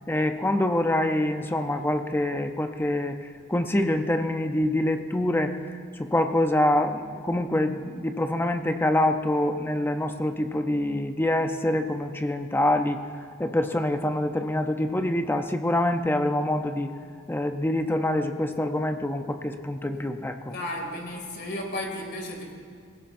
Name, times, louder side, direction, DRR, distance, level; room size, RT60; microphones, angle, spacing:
voice 1, 0.1-13.0 13.4-16.9 17.3-20.6, left 1 dB, 10° left, 6 dB, 0.6 m, -25 dB
voice 2, 20.5-22.5, left 1 dB, 50° left, 1 dB, 2.3 m, -34 dB
19.0 x 17.0 x 2.6 m, 2.2 s
head